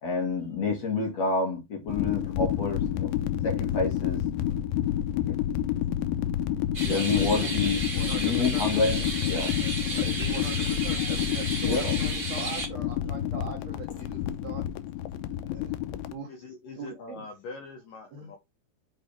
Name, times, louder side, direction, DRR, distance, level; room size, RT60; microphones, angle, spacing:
voice 1, 0.0-3.1 3.4-4.2 5.3-5.4 6.9-9.5 11.6-12.0 13.9-14.0, left 3 dB, 45° left, 2.6 m, -29 dB
sound 1, 1.9-16.1, left 11 dB, 85° left, 2.3 m, -29 dB
sound 2, 6.7-12.7, right 3 dB, 20° right, 1.4 m, -33 dB
voice 2, 6.8-7.6 7.9-8.7 9.9-14.6 15.4-15.7 16.1-16.3 16.7-17.3 18.1-18.3, right 5 dB, 70° right, 1.6 m, -41 dB
voice 3, 16.3-18.4, left 3 dB, 65° left, 2.1 m, -43 dB
8.0 x 4.4 x 3.4 m
omnidirectional pair, 5.4 m